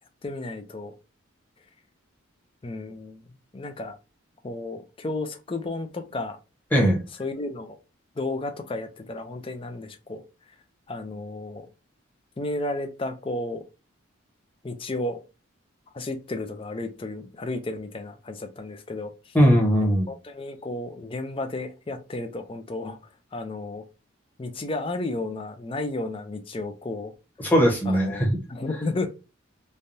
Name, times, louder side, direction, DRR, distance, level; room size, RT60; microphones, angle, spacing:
voice 1, 0.2-0.9 2.6-3.3 3.5-4.0 4.4-6.4 7.2-7.7 8.2-10.2 10.9-11.6 12.4-13.6 14.6-15.2 15.9-19.1 20.1-23.0 23.3-23.8 24.4-27.1 27.9-29.1, left 2 dB, 25° left, 0.4 m, -32 dB
voice 2, 6.7-7.0 19.3-20.1 27.4-28.4, equal, 10° left, 0.9 m, -19 dB
3.3 x 2.2 x 2.6 m
head